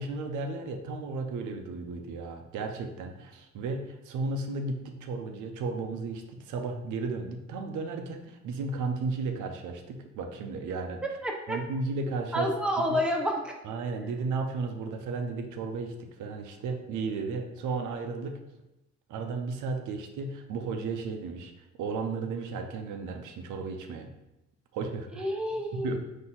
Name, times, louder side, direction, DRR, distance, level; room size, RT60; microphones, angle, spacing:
voice 1, 0.0-11.0 11.5-12.5 12.9-13.0 13.6-18.4 19.1-21.5 21.8-24.1 24.7-25.2 25.7-26.0, right 4 dB, 85° right, 5 dB, 0.6 m, -34 dB
voice 2, 11.2-11.6 12.3-13.5 25.1-26.0, equal, 5° right, 0 dB, 0.6 m, -29 dB
3.9 x 2.7 x 4.1 m, 0.92 s
cardioid pair, 90°, 30 cm